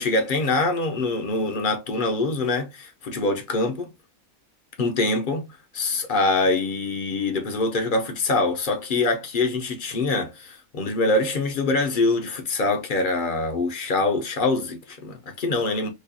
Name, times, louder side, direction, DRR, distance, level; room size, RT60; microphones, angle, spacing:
voice 1, 0.0-3.9 4.8-5.5 5.7-15.9, left 3 dB, 50° left, 0.6 m, -24 dB
4.9 x 2.3 x 2.6 m
omnidirectional pair, 1.6 m